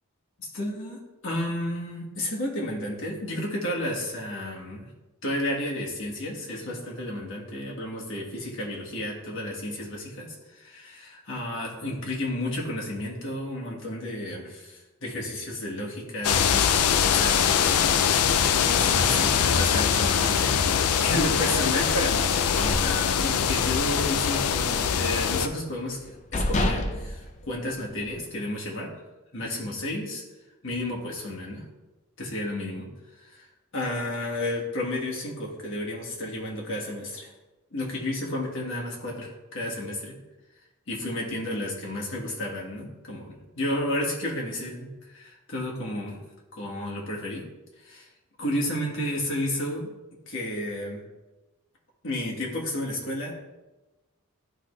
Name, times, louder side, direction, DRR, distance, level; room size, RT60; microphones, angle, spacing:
voice 1, 0.4-4.9 5.2-17.9 18.3-29.0 29.3-30.2 30.6-31.6 32.2-32.9 33.2-33.5 33.7-37.3 37.7-40.1 40.9-46.2 46.5-47.4 47.8-48.1 48.4-49.9 50.3-51.0 52.0-53.3, left 1 dB, 60° left, -2 dB, 1.6 m, -32 dB
sound 1, 16.2-25.5, left 7 dB, 85° left, 0.4 m, -23 dB
sound 2, 22.5-23.8 24.1-24.4 24.7-25.5 26.0-26.1 26.3-28.2, left 1 dB, 30° left, 0.6 m, -29 dB
11.5 x 3.9 x 3.2 m, 1.1 s
head